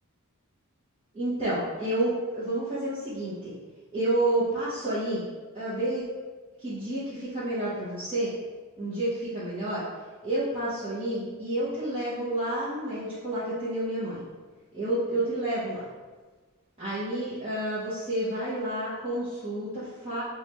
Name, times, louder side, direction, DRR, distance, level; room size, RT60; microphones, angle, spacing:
voice 1, 1.1-3.5 3.9-5.2 5.5-6.0 6.6-8.3 8.8-9.8 10.2-14.2 14.7-15.8 16.8-20.2, right 1 dB, 25° right, -13 dB, 0.9 m, -29 dB
3.2 x 2.4 x 4.2 m, 1.3 s
head